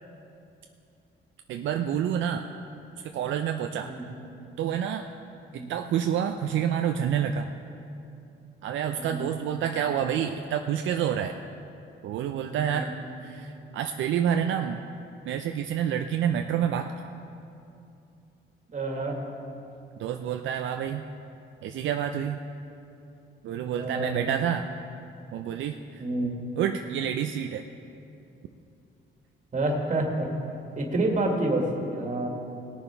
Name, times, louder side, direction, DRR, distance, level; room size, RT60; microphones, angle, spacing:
voice 1, 1.5-2.5 3.1-3.9 4.6-5.1 5.5-7.5 8.6-11.3 12.0-12.9 13.2-14.8 15.3-16.9 20.0-21.0 21.6-22.4 23.4-24.7 25.3-26.0 26.6-27.6, right 9 dB, 75° right, 5 dB, 0.5 m, -28 dB
voice 2, 8.9-9.3 12.5-12.9 18.7-19.2 23.7-24.2 26.0-26.4 29.5-30.3 30.8-32.3, right 2 dB, 40° right, 1 dB, 2.0 m, -28 dB
18.0 x 7.0 x 4.5 m, 2.7 s
cardioid pair, 90°, 20 cm